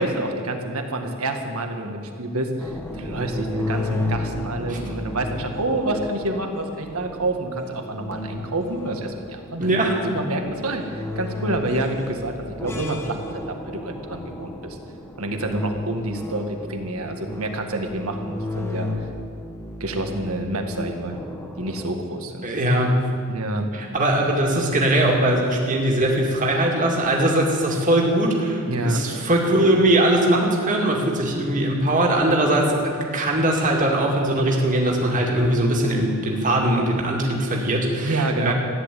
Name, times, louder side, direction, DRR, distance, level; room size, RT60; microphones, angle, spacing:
voice 1, 0.0-9.7 10.0-12.3 12.6-13.2 13.5-14.8 15.2-19.1 19.8-21.2 21.6-22.5 23.3-23.7 28.7-29.0 38.0-38.5, right 1 dB, 75° right, 4 dB, 1.8 m, -28 dB
sound 1, 2.6-21.9, left 1 dB, 10° left, 1.5 m, -33 dB
voice 2, 9.6-10.1 22.4-22.9 23.7-38.5, right 1 dB, 35° right, -1 dB, 2.3 m, -21 dB
14.5 x 10.5 x 8.4 m, 2.2 s
head